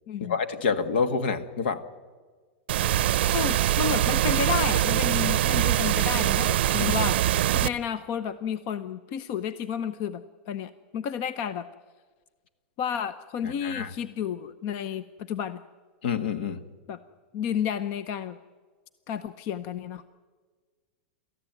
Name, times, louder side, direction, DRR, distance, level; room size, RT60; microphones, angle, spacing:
voice 1, 0.2-1.8 6.7-6.9 7.5-7.6 13.4-13.9 16.0-16.6, left 5 dB, 70° left, 10 dB, 1.8 m, -28 dB
sound 1, 2.7-7.7, right 13 dB, 70° right, 0.6 m, -23 dB
voice 2, 3.3-11.7 12.8-15.6 16.9-17.0 17.3-18.4 19.1-20.0, left 8 dB, 35° left, 13 dB, 0.7 m, -31 dB
29.0 x 14.0 x 9.2 m, 1.5 s
supercardioid pair, 165°, 6 cm